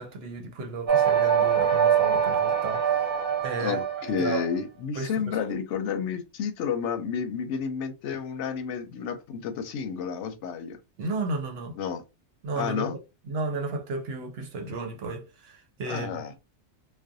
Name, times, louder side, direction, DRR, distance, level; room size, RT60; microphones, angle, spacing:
voice 1, 0.0-3.0 3.4-3.8 4.2-4.4 5.0-5.4 11.0-11.8 12.4-12.9 13.3-16.2, right 3 dB, 65° right, 0.8 m, -33 dB
sound 1, 0.9-4.5, right 8 dB, 35° right, 0.5 m, -24 dB
voice 2, 3.6-10.8 11.8-12.0 12.6-13.0 15.9-16.3, left 6 dB, 80° left, 0.9 m, -31 dB
2.5 x 2.2 x 2.6 m
omnidirectional pair, 1.2 m